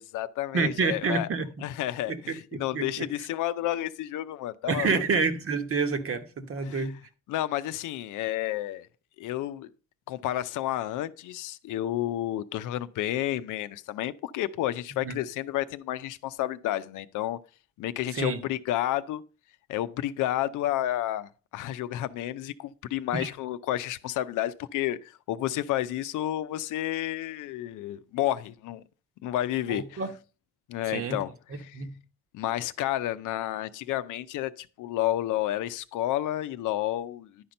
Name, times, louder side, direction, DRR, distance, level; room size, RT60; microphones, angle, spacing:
voice 1, 0.0-1.3 1.6-5.0 6.6-6.9 7.3-8.9 9.2-9.7 10.1-17.4 17.8-19.2 19.7-28.8 29.2-30.0 30.7-31.3 31.6-31.8 32.3-37.5, left 13 dB, 85° left, 0.6 m, -31 dB
voice 2, 0.5-1.5 2.1-2.2 2.5-3.1 4.7-7.0 15.0-15.1 18.1-18.4 23.1-23.3 29.7-30.1 30.9-31.2 31.7-31.9, right 4 dB, 45° right, 1.2 m, -28 dB
11.0 x 4.4 x 5.3 m
cardioid pair, 90°, 30 cm